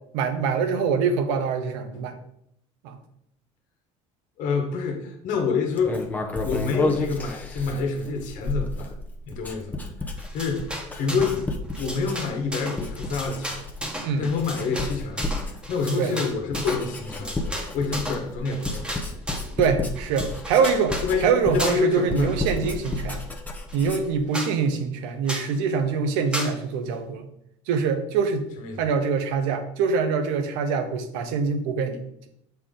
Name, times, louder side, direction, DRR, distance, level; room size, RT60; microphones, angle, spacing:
voice 1, 0.1-2.2 2.8-3.0 14.0-14.2 16.0-16.1 19.6-23.2 23.7-27.3 27.7-28.5 28.8-32.3, right 5 dB, 80° right, 7 dB, 0.9 m, -24 dB
voice 2, 4.4-6.0 6.4-8.9 9.3-11.4 11.8-13.6 14.2-15.3 15.7-18.8 21.0-22.4 28.6-28.9, left 5 dB, 65° left, 3 dB, 1.3 m, -27 dB
Writing, 5.8-12.5 12.8-13.9 14.3-24.2, left 2 dB, 10° left, 0.8 m, -32 dB
sound 1, 10.2-11.4 11.7-19.5 20.0-21.1 21.6-22.0 22.3-23.2 23.7-23.8 24.0-24.1 24.3-24.5 25.3-25.5 26.3-26.5, equal, 5° right, 1.3 m, -34 dB
6.5 x 4.5 x 3.8 m, 0.73 s
supercardioid pair, 110°, 14 cm